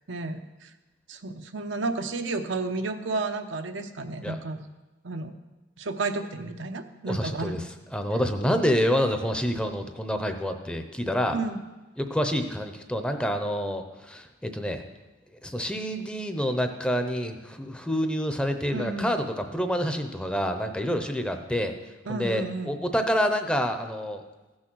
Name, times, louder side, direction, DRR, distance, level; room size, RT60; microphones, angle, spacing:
voice 1, 0.1-0.7 1.1-4.7 5.0-5.3 5.8-7.7 11.3-11.6 18.7-19.1 22.1-22.7, right 3 dB, 85° right, 6 dB, 0.8 m, -32 dB
voice 2, 7.1-7.6 7.9-11.4 12.0-14.8 15.4-21.7 22.1-24.2, equal, 5° left, 7 dB, 0.7 m, -27 dB
15.0 x 6.3 x 6.2 m, 1.1 s
head